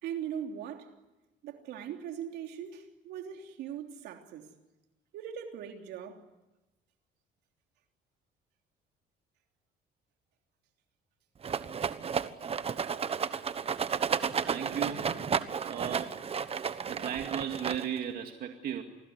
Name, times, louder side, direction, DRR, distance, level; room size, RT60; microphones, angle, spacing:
voice 1, 0.0-0.9 1.4-4.5 5.1-6.2, right 9 dB, 80° right, 3.3 m, -40 dB
Rattle, 11.4-18.1, right 7 dB, 35° right, 1.2 m, -32 dB
voice 2, 14.4-15.2 15.6-16.1 16.5-18.8, right 9 dB, 60° right, 2.3 m, -36 dB
27.5 x 20.5 x 9.7 m
cardioid pair, 110°, 17 cm